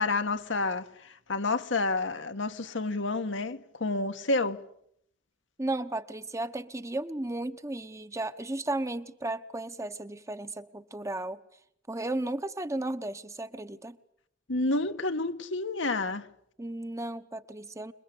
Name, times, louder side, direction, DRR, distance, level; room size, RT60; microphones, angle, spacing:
voice 1, 0.0-4.6 14.5-16.3, left 3 dB, 75° left, 1.5 m, -29 dB
voice 2, 5.6-11.4 11.9-14.0 16.6-17.9, right 2 dB, 15° right, 1.0 m, -34 dB
27.5 x 21.5 x 8.5 m
head